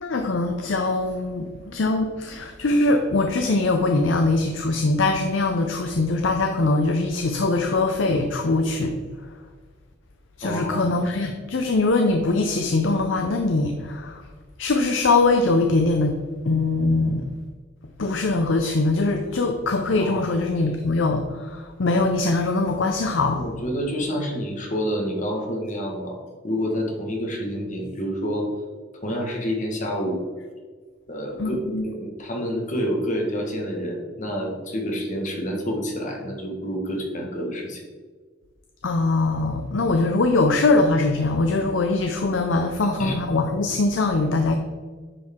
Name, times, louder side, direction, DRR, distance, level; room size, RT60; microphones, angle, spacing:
voice 1, 0.0-9.0 10.4-14.3 14.6-16.2 16.4-17.3 18.0-23.4 31.4-31.9 38.8-44.5, left 3 dB, 85° left, 5 dB, 0.6 m, -22 dB
voice 2, 10.4-10.9 19.9-20.2 23.3-26.2 26.4-28.5 29.0-30.2 31.1-37.8 43.0-43.1, equal, 40° left, 0 dB, 1.5 m, -28 dB
9.9 x 4.6 x 3.7 m, 1.5 s
head